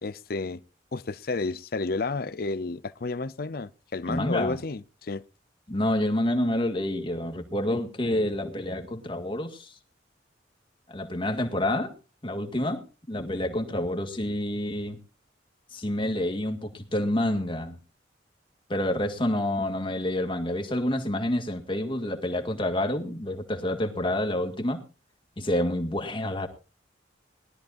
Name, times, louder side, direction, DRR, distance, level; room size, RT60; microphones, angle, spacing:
voice 1, 0.0-0.6 0.9-5.2, left 3 dB, 55° left, 0.6 m, -31 dB
voice 2, 4.1-4.6 5.7-9.7 10.9-11.9 12.2-15.0 15.7-17.8 18.7-24.8 25.4-26.5, left 1 dB, 30° left, 2.0 m, -28 dB
21.0 x 13.0 x 2.6 m
head